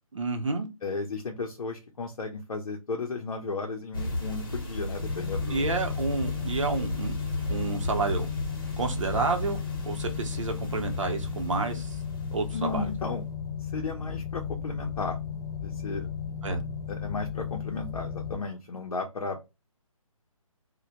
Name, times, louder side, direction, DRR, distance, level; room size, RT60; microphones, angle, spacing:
voice 1, 0.1-0.7 5.5-7.1 7.5-8.3 8.8-11.9 12.3-12.9 16.4-16.6, right 3 dB, 60° right, 0.7 m, -30 dB
voice 2, 0.8-5.7 12.5-13.2 13.6-15.2 15.6-16.1 16.9-19.5, left 3 dB, 75° left, 0.6 m, -34 dB
sound 1, 3.9-13.0, left 1 dB, 40° left, 0.7 m, -35 dB
sound 2, 4.9-18.3, left 7 dB, ahead, 0.4 m, -35 dB
2.1 x 2.1 x 2.7 m
hypercardioid pair, 175°, 18 cm